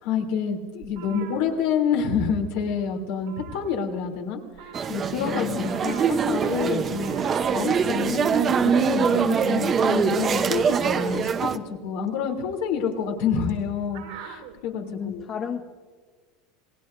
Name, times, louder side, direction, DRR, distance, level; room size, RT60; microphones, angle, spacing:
voice 1, 0.0-15.3, left 6 dB, 75° left, 1 dB, 3.3 m, -28 dB
sound 1, 0.8-2.3 2.6-2.8 3.1-4.2 4.5-14.6, right 8 dB, 90° right, 4.4 m, -44 dB
sound 2, 4.7-11.6, right 6 dB, 30° right, 0.9 m, -23 dB
voice 2, 5.2-5.8 14.8-15.6, left 9 dB, 35° left, 4 dB, 1.0 m, -32 dB
27.5 x 19.0 x 2.7 m, 1.5 s
supercardioid pair, 125°, 0 cm